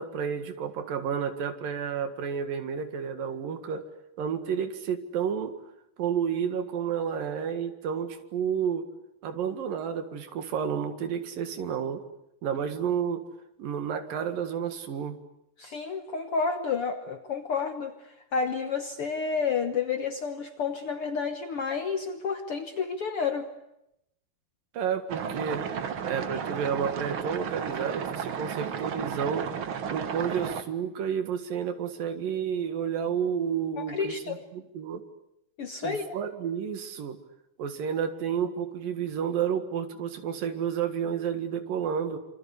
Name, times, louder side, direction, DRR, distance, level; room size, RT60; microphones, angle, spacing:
voice 1, 0.0-3.9 4.2-5.6 6.0-8.9 9.2-12.0 12.4-13.2 13.6-15.2 24.7-25.7 26.0-29.5 29.9-35.0 35.8-37.2 37.6-42.2, right 7 dB, 80° right, 8 dB, 3.5 m, -31 dB
voice 2, 15.6-23.5 33.8-34.4 35.6-36.2, left 5 dB, 60° left, 7 dB, 1.5 m, -30 dB
sound 1, 25.1-30.6, right 7 dB, 55° right, 1.5 m, -33 dB
27.0 x 25.5 x 8.3 m, 0.83 s
omnidirectional pair, 4.0 m